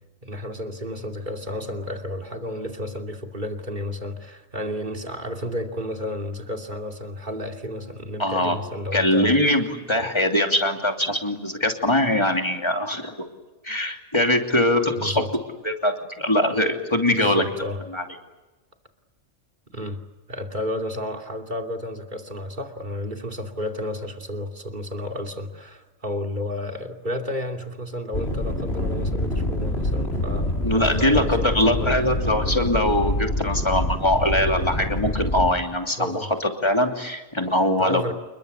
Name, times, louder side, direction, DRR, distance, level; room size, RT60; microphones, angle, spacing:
voice 1, 0.2-9.4 9.9-10.1 15.0-15.3 17.1-17.8 19.7-20.0 20.3-32.0 36.0-36.3 37.8-38.1, left 1 dB, 40° right, 3 dB, 2.9 m, -32 dB
voice 2, 8.2-8.6 8.9-13.3 13.6-15.2 15.6-17.4 17.9-18.0 30.6-38.1, left 1 dB, 25° left, 3 dB, 3.0 m, -22 dB
sound 1, 28.1-35.5, left 1 dB, 60° left, 4.6 m, -26 dB
29.0 x 22.0 x 8.4 m, 1.1 s
omnidirectional pair, 1.2 m